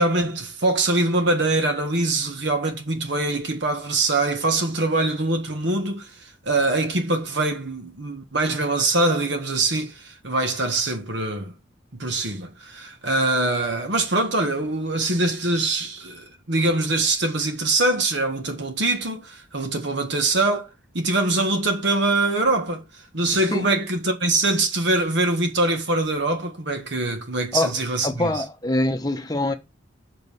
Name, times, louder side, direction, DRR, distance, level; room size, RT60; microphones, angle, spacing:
voice 1, 0.0-6.1 6.4-11.5 11.9-20.7 20.9-22.8 23.1-28.4, right 2 dB, 60° right, 1.5 m, -23 dB
voice 2, 28.0-29.5, left 1 dB, 20° left, 1.0 m, -24 dB
6.6 x 5.2 x 5.5 m
head